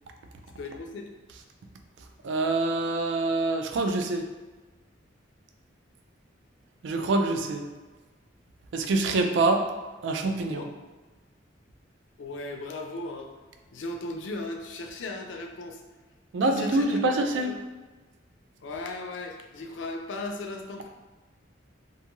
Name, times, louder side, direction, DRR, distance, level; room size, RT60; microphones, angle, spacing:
voice 1, 0.6-1.1 10.2-10.6 12.2-13.3 13.7-15.8 16.4-17.0 17.4-17.6 18.6-20.9, left 2 dB, 80° left, 3 dB, 0.4 m, -37 dB
voice 2, 2.2-4.3 6.8-7.7 8.7-9.6 10.0-10.6 16.3-17.6, right 2 dB, 75° right, 5 dB, 0.3 m, -25 dB
2.6 x 2.3 x 2.9 m, 1.2 s
head